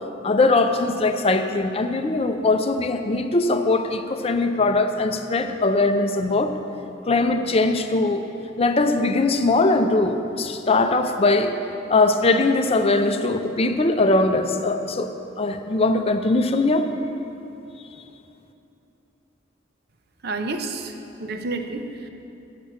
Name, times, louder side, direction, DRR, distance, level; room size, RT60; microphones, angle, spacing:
voice 1, 0.2-6.5 7.1-8.2 8.6-11.6 11.9-15.1 15.4-16.9, left 2 dB, 30° left, 7 dB, 0.5 m, -21 dB
voice 2, 20.2-20.9 21.2-22.1, right 3 dB, 55° right, 6 dB, 0.7 m, -29 dB
8.7 x 7.5 x 6.9 m, 2.9 s
head